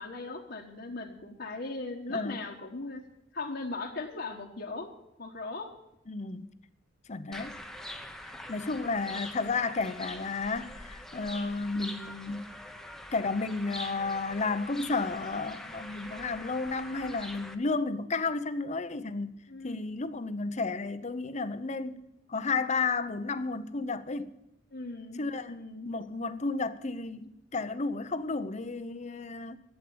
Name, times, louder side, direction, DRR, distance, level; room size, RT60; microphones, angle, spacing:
voice 1, 0.0-3.0 3.3-4.9 5.2-5.7 19.5-19.8 24.7-25.2 25.5-25.9, left 3 dB, 60° left, 1.3 m, -38 dB
voice 2, 2.1-2.4 6.1-6.5 7.1-7.6 8.2-12.5 13.1-19.3 19.6-22.0 22.3-24.3 25.2-25.6 25.9-29.6, left 3 dB, 40° left, 0.7 m, -32 dB
sound 1, 7.3-17.5, left 1 dB, ahead, 1.0 m, -44 dB
12.5 x 8.4 x 8.5 m
head